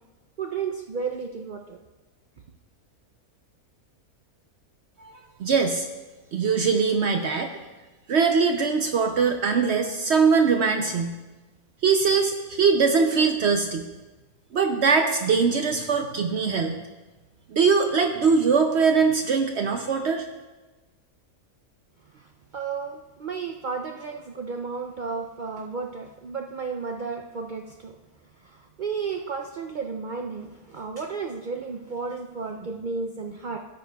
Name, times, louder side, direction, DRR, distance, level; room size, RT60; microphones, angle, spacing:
voice 1, 0.4-1.8 22.1-28.0 28.4-33.6, right 5 dB, 85° right, 3 dB, 0.4 m, -33 dB
voice 2, 5.4-5.9 6.3-7.5 8.1-11.1 11.8-13.9 14.5-16.8 17.5-20.3, right 5 dB, 60° right, 5 dB, 0.8 m, -22 dB
16.5 x 8.9 x 2.3 m, 1.2 s
omnidirectional pair, 1.5 m